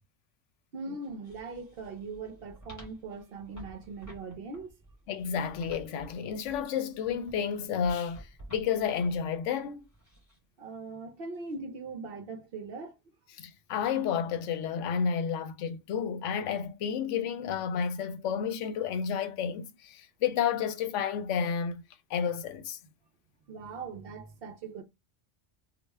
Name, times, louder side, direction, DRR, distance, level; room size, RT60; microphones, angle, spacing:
voice 1, 0.7-4.7 10.6-13.0 23.5-24.8, right 3 dB, 60° right, 0.7 m, -40 dB
sound 1, 1.0-10.4 11.3-11.5, right 1 dB, 15° left, 1.5 m, -52 dB
voice 2, 5.1-9.9 13.3-21.8 22.1-22.8, left 7 dB, 80° left, 0.9 m, -31 dB
3.1 x 2.3 x 3.3 m
omnidirectional pair, 1.2 m